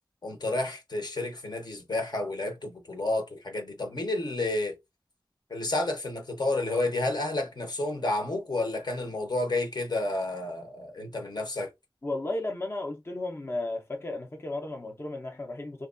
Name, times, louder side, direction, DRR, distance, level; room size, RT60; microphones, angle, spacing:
voice 1, 0.2-4.8 5.5-11.7, left 2 dB, 60° left, 0.8 m, -30 dB
voice 2, 12.0-15.9, left 2 dB, 30° left, 0.5 m, -34 dB
2.9 x 2.3 x 2.4 m
wide cardioid pair, 60°, 8 cm